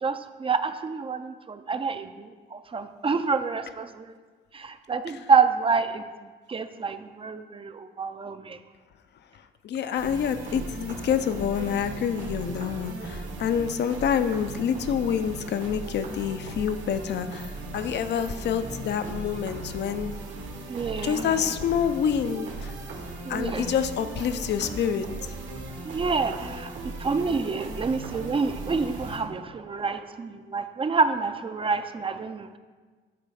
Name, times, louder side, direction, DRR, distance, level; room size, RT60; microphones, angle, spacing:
voice 1, 0.0-4.2 4.5-6.0 6.5-8.6 20.7-21.5 23.2-23.7 25.8-32.6, right 5 dB, 25° right, 10 dB, 0.4 m, -28 dB
voice 2, 9.6-20.1 21.0-22.7 23.3-25.1, left 8 dB, 60° left, 10 dB, 0.5 m, -27 dB
sound 1, 10.0-29.2, right 2 dB, 80° right, 1.6 m, -38 dB
8.4 x 3.3 x 6.3 m, 1.4 s
cardioid pair, 90°, 20 cm